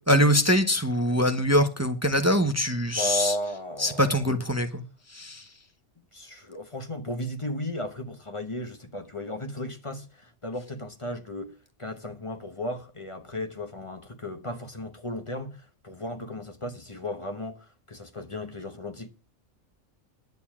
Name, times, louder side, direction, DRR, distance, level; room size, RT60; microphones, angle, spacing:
voice 1, 0.1-3.3 3.8-4.8 5.1-5.4, equal, 15° right, 0.8 m, -23 dB
voice 2, 3.0-4.4 6.1-19.1, left 1 dB, 25° left, 1.0 m, -35 dB
11.0 x 7.0 x 7.2 m
omnidirectional pair, 1.5 m